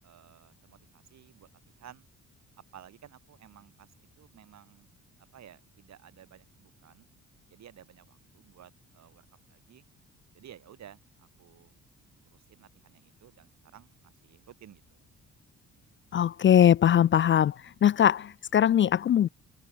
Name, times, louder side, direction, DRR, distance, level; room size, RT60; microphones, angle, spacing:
voice 1, 0.0-1.5 1.7-2.1 2.7-4.9 5.3-7.1 7.5-9.8 10.3-11.7 12.3-15.0, right 10 dB, 65° right, 3.3 m, -54 dB
voice 2, 16.1-17.5 17.8-19.3, left 10 dB, 40° left, 0.4 m, -21 dB
cardioid pair, 90°, 30 cm